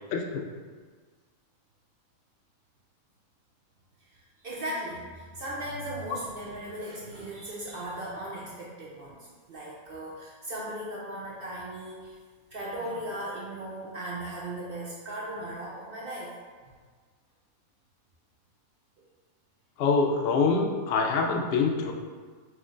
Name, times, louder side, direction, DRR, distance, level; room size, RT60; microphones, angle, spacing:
voice 1, 0.1-0.5 19.8-21.9, left 4 dB, 70° left, 1 dB, 0.6 m, -25 dB
voice 2, 4.1-12.2 12.5-16.3, right 1 dB, 55° right, -6 dB, 0.7 m, -37 dB
5.5 x 2.9 x 2.5 m, 1.5 s
omnidirectional pair, 1.5 m